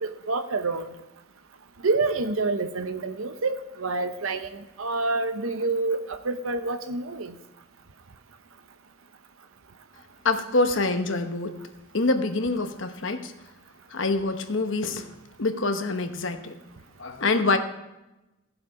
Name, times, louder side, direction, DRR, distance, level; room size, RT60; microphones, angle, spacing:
voice 1, 0.0-0.9 1.8-7.3, right 3 dB, 90° right, 9 dB, 0.8 m, -28 dB
voice 2, 10.2-11.6 11.9-13.3 13.9-15.1 15.4-16.5 17.0-17.6, left 3 dB, 65° left, 7 dB, 1.0 m, -25 dB
15.5 x 7.6 x 4.8 m, 0.99 s
head